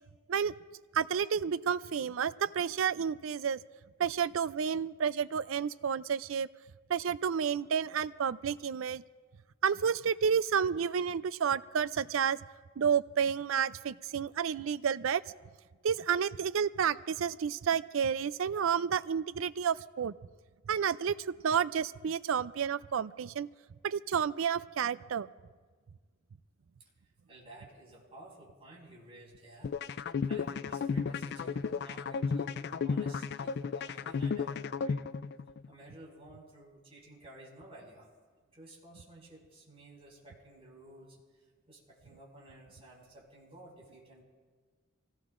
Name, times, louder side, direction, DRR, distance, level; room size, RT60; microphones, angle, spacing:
voice 1, 0.9-3.6 4.0-6.5 6.9-9.0 9.6-12.4 12.8-15.2 15.8-20.1 20.7-23.5 23.8-25.3, right 7 dB, 80° right, 17 dB, 0.4 m, -30 dB
voice 2, 27.3-35.0 35.6-38.1 38.5-44.2, right 1 dB, 30° right, -3 dB, 5.3 m, -54 dB
sound 1, 29.6-35.7, left 5 dB, 55° left, 0.4 m, -33 dB
26.0 x 18.0 x 2.5 m, 1.5 s
head